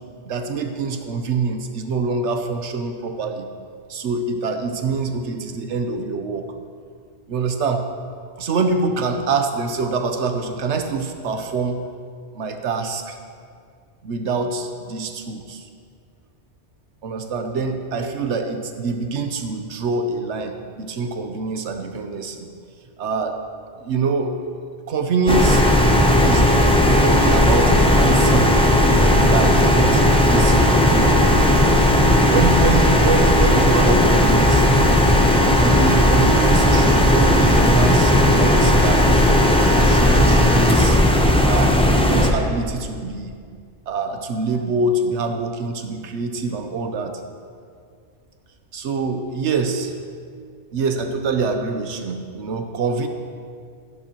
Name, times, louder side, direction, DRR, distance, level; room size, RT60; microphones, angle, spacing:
voice 1, 0.2-3.5 3.9-6.5 7.3-7.9 8.4-11.8 12.3-13.2 14.0-15.7 17.0-22.5 23.0-23.4 23.8-24.4 24.9-25.6 26.2-26.5 27.0-28.6 29.2-31.3 32.3-34.8 35.6-39.3 39.8-41.0 41.5-43.4 43.9-47.2 48.7-49.9 50.7-53.1, right 4 dB, 80° right, 6 dB, 1.1 m, -25 dB
sound 1, 25.3-42.3, left 1 dB, 5° left, 0.6 m, -15 dB
13.0 x 10.5 x 3.0 m, 2.2 s
omnidirectional pair, 1.2 m